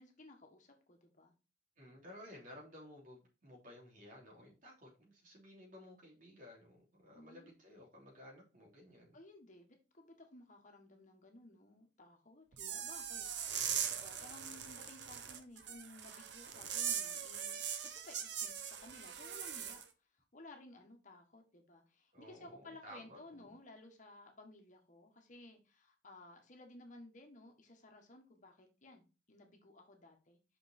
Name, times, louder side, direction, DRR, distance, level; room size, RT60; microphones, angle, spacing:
voice 1, 0.0-1.3 7.1-7.5 9.1-19.8 20.3-30.4, left 2 dB, 45° left, 1.5 m, -57 dB
voice 2, 1.8-9.2 22.1-23.6, left 1 dB, 50° right, 3.3 m, -55 dB
sound 1, 12.5-19.8, right 8 dB, 75° right, 0.9 m, -41 dB
6.0 x 5.4 x 4.4 m
head